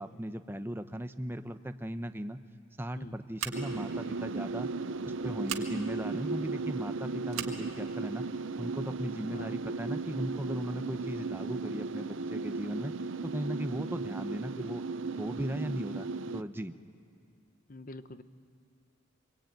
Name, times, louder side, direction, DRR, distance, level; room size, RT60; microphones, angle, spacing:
voice 1, 0.0-2.4 2.8-4.7 5.0-8.3 8.6-12.9 13.2-14.8 15.2-16.1 16.3-16.7, equal, 10° right, 9 dB, 0.7 m, -37 dB
Scissors, 3.4-3.9 5.4-5.7 7.3-7.6, right 9 dB, 90° right, 1.9 m, -37 dB
sound 1, 3.5-16.4, right 3 dB, 65° right, 0.6 m, -36 dB
voice 2, 9.3-9.6 17.7-18.2, left 2 dB, 40° left, 11 dB, 0.8 m, -46 dB
25.0 x 22.5 x 9.2 m, 2.3 s
head